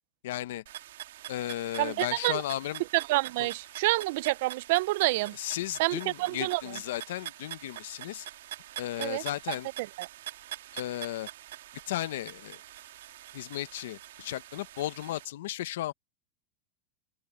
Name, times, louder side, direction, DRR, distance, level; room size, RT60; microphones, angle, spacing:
voice 1, 0.2-0.6 1.3-2.8 3.4-3.5 5.3-8.3 8.8-9.7 10.7-11.3 11.9-12.6 13.3-15.9, left 14 dB, 85° left, 1.0 m, -35 dB
sound 1, 0.7-15.3, right 13 dB, 85° right, 1.7 m, -45 dB
voice 2, 1.8-2.4 2.9-5.4 5.8-6.6 9.0-9.2 9.8-10.1, right 20 dB, 70° right, 0.4 m, -28 dB
open air
supercardioid pair, 125°, 0 cm